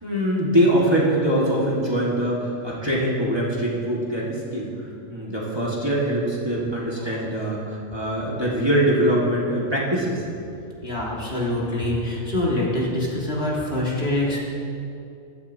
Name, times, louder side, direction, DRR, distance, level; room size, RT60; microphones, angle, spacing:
voice 1, 0.0-4.7 5.1-10.2, right 1 dB, 20° right, -6 dB, 1.7 m, -23 dB
voice 2, 10.8-14.4, left 1 dB, 50° left, -5 dB, 2.1 m, -25 dB
15.0 x 11.5 x 2.8 m, 2.6 s
omnidirectional pair, 1.3 m